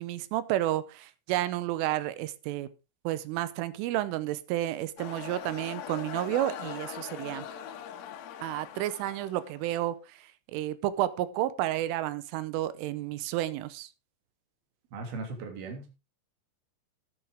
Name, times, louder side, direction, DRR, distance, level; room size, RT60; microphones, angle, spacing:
voice 1, 0.0-2.7 3.0-7.5 8.4-10.0 10.5-13.9, right 14 dB, 80° right, 3.3 m, -31 dB
sound 1, 5.0-9.8, left 9 dB, 90° left, 4.3 m, -41 dB
voice 2, 14.9-15.9, right 3 dB, 50° right, 4.4 m, -38 dB
13.0 x 11.0 x 3.6 m
omnidirectional pair, 6.0 m